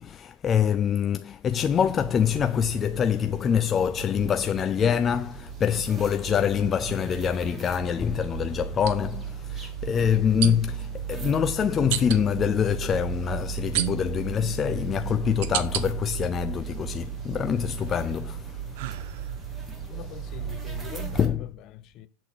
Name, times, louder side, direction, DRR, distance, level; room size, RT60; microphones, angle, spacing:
voice 1, 0.0-18.7 19.9-20.0 21.1-21.5, left 8 dB, 25° left, 0.4 m, -25 dB
sound 1, 1.5-21.3, right 8 dB, 20° right, 1.9 m, -36 dB
sound 2, 8.8-8.9 10.4-10.8 11.9-12.2 13.7-14.3 14.9-15.9 16.4-17.1 17.5-19.5, right 13 dB, 65° right, 0.7 m, -32 dB
voice 2, 19.8-22.1, left 10 dB, 45° left, 0.8 m, -42 dB
7.5 x 4.1 x 6.1 m
hypercardioid pair, 120°, 0 cm